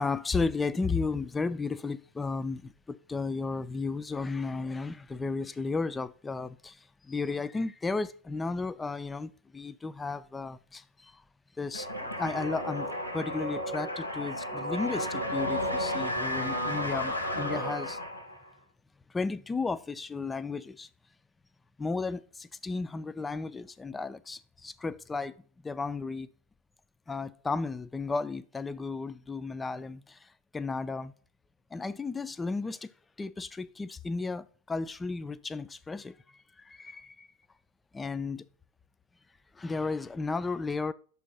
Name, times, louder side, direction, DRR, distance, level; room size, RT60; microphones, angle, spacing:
voice 1, 0.0-11.2 11.6-18.0 19.1-20.9 21.8-26.3 27.1-31.1 31.7-32.9 33.2-37.3 37.9-38.4 39.6-40.9, left 4 dB, 10° left, 0.3 m, -34 dB
sound 1, 11.7-18.5, equal, 85° left, 1.1 m, -33 dB
6.1 x 3.0 x 5.3 m
figure-of-eight pair, 90°, 0 cm